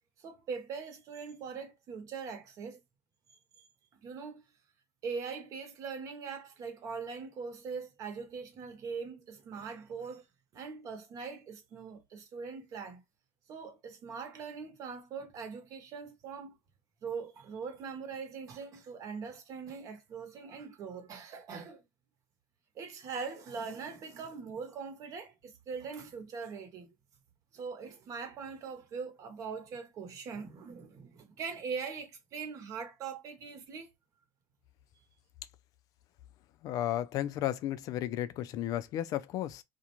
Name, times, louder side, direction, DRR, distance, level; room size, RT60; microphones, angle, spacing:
voice 1, 0.2-2.8 3.9-4.4 5.0-10.2 10.5-13.0 13.5-16.6 17.0-21.8 22.7-26.9 27.5-33.9, right 5 dB, 50° right, 0.9 m, -41 dB
voice 2, 36.6-39.6, left 12 dB, 55° left, 0.4 m, -33 dB
2.5 x 2.1 x 2.9 m
supercardioid pair, 110°, 7 cm